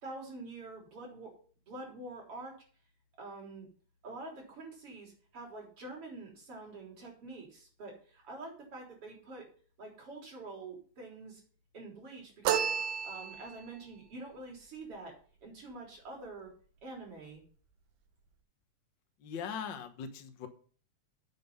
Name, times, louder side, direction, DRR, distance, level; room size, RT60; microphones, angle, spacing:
voice 1, 0.0-1.3 1.7-2.6 3.2-3.7 4.0-9.5 9.8-11.4 11.7-12.7 13.0-15.2 15.4-16.5 16.8-17.4, right 2 dB, 45° right, -1 dB, 4.6 m, -46 dB
sound 1, 12.5-13.7, right 8 dB, 75° right, 2.4 m, -31 dB
voice 2, 19.2-20.5, left 7 dB, 65° left, 6 dB, 1.1 m, -40 dB
9.6 x 7.7 x 5.5 m, 0.42 s
omnidirectional pair, 3.7 m